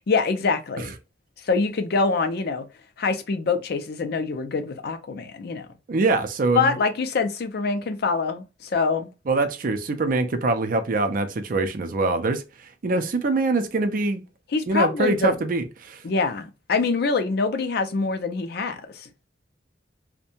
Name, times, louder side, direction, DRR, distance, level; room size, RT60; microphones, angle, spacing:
voice 1, 0.1-0.9 1.4-2.7 3.0-5.7 6.5-9.1 14.5-15.3 16.0-19.1, left 4 dB, 60° left, 0.4 m, -25 dB
voice 2, 5.9-6.8 9.3-12.4 12.8-14.2 14.7-16.0, right 3 dB, 50° right, 0.4 m, -23 dB
2.6 x 2.1 x 2.7 m
head